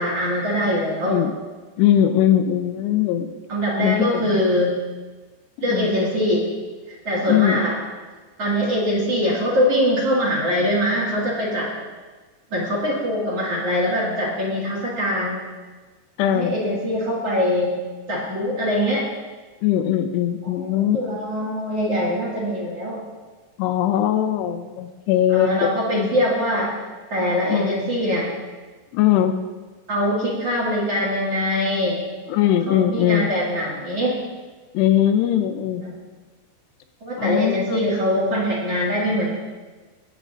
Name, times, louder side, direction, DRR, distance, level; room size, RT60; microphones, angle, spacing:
voice 1, 0.0-1.2 3.5-4.8 5.6-6.5 6.9-7.8 8.4-11.7 12.5-15.4 16.2-17.8 18.1-19.1 20.4-23.0 25.3-26.7 27.1-28.3 29.9-32.0 32.7-34.2 35.8-35.9 37.0-39.4, equal, 45° right, -6 dB, 2.6 m, -23 dB
voice 2, 1.0-1.4 1.8-3.3 3.8-4.4 5.6-5.9 7.3-7.7 16.2-16.6 19.6-21.2 23.6-26.1 27.5-27.9 28.9-29.4 32.3-33.3 34.7-35.8 37.2-37.9, left 11 dB, 80° left, 7 dB, 2.7 m, -21 dB
21.5 x 8.7 x 2.6 m, 1.3 s
omnidirectional pair, 5.0 m